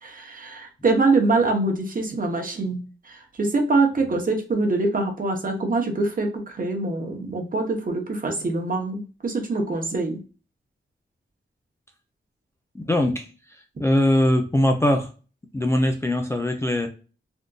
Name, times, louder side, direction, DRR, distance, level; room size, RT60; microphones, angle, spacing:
voice 1, 0.0-10.2, right 3 dB, 45° right, 2 dB, 0.8 m, -24 dB
voice 2, 12.7-13.3 13.8-15.1 15.5-16.9, left 1 dB, 15° left, 4 dB, 0.3 m, -21 dB
3.6 x 2.5 x 2.2 m, 0.35 s
wide cardioid pair, 160°, 21 cm